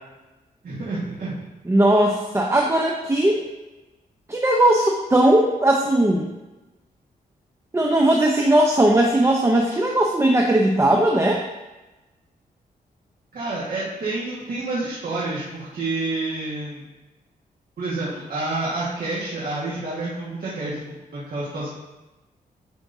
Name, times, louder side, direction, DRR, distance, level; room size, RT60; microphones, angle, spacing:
voice 1, 0.6-1.4 13.3-16.8 17.8-21.7, right 2 dB, 65° right, -7 dB, 1.7 m, -29 dB
voice 2, 1.7-3.5 4.3-6.3 7.7-11.4, right 1 dB, 15° right, 0 dB, 0.7 m, -18 dB
10.5 x 5.2 x 2.7 m, 1.1 s
cardioid pair, 90°, 16 cm